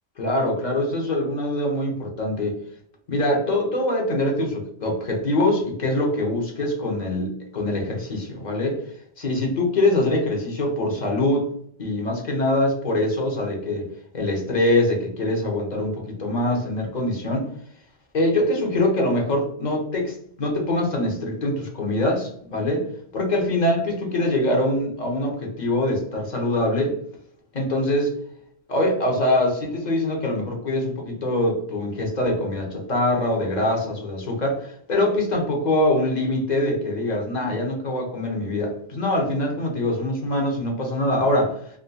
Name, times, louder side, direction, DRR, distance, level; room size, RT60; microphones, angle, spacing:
voice 1, 0.2-2.6 3.1-8.8 9.2-11.5 11.8-13.9 14.1-17.5 18.1-22.9 23.1-27.0 27.5-28.2 28.7-41.6, left 1 dB, 50° left, 0 dB, 0.9 m, -23 dB
3.6 x 2.7 x 2.2 m, 0.66 s
omnidirectional pair, 1.0 m